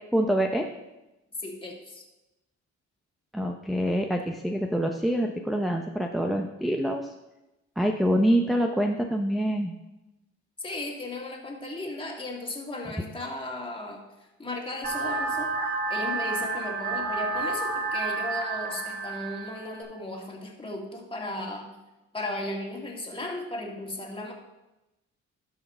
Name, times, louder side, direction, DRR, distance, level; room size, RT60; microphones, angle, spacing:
voice 1, 0.1-0.7 3.3-7.1 7.8-9.8, equal, ahead, 3 dB, 0.7 m, -26 dB
voice 2, 1.4-2.0 10.6-15.5 15.9-21.7 22.1-24.3, left 1 dB, 15° left, -1 dB, 2.1 m, -36 dB
sound 1, 14.8-19.8, right 3 dB, 30° right, 2.9 m, -30 dB
12.0 x 5.7 x 4.3 m, 0.98 s
cardioid pair, 90°, 30 cm